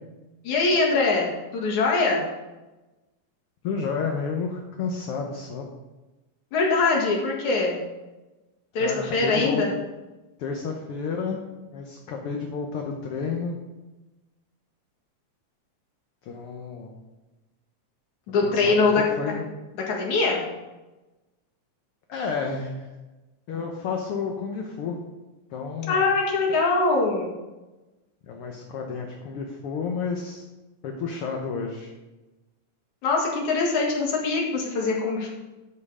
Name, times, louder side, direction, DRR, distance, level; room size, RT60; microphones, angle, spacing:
voice 1, 0.4-2.2 6.5-7.8 8.7-9.7 18.3-19.3 19.9-20.4 25.9-27.3 33.0-35.3, left 3 dB, 80° left, -1 dB, 3.3 m, -23 dB
voice 2, 3.6-5.6 8.8-9.6 10.4-11.4 11.7-13.5 16.2-16.9 18.4-18.8 19.2-19.4 22.1-22.9 23.5-25.0 25.5-26.0 28.2-30.4 30.8-31.9, left 5 dB, 65° left, 1 dB, 1.6 m, -31 dB
12.5 x 5.5 x 4.9 m, 1.1 s
omnidirectional pair, 3.4 m